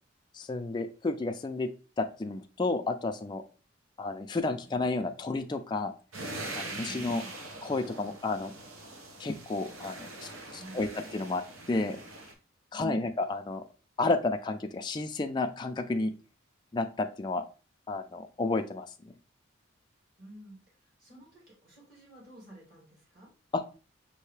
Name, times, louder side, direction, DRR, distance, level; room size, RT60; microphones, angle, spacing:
voice 1, 0.3-1.7 2.0-3.4 4.0-5.9 6.6-7.2 7.6-8.5 9.2-11.4 11.7-12.0 12.7-13.6 14.0-16.1 16.7-17.5 17.9-19.2 23.5-23.6, left 3 dB, 20° left, 5 dB, 0.3 m, -31 dB
sound 1, 6.1-12.3, right 2 dB, 90° right, 0.9 m, -42 dB
voice 2, 6.8-7.4 10.5-10.9 12.7-13.0 20.2-23.3, equal, 45° right, -4 dB, 2.1 m, -50 dB
5.5 x 2.7 x 3.2 m, 0.34 s
head